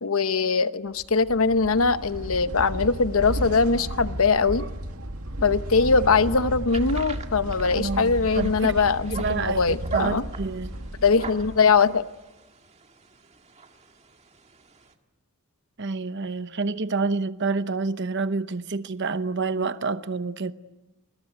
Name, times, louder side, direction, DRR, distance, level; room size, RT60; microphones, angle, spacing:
voice 1, 0.0-4.6 5.4-10.2 11.0-12.1, left 4 dB, 70° left, 0.9 m, -22 dB
sound 1, 1.0-12.0, right 1 dB, 80° right, 2.2 m, -34 dB
sound 2, 6.7-14.9, right 4 dB, 30° right, 1.9 m, -40 dB
voice 2, 7.8-8.8 9.1-10.7 15.8-20.5, right 4 dB, 55° right, 0.9 m, -28 dB
28.5 x 21.0 x 9.3 m
head